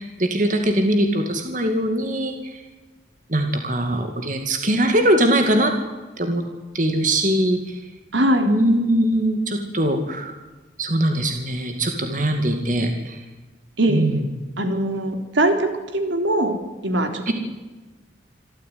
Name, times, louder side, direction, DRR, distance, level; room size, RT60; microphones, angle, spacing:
voice 1, 0.0-2.6 3.3-5.7 6.2-6.4 6.7-7.8 8.4-10.4 10.8-13.2 13.9-14.2 17.3-17.4, right 1 dB, 40° right, 5 dB, 2.3 m, -21 dB
voice 2, 8.1-8.5 13.8-14.0 14.6-16.6 16.8-17.3, right 1 dB, 75° right, 6 dB, 3.5 m, -21 dB
26.0 x 14.0 x 9.5 m, 1.2 s
head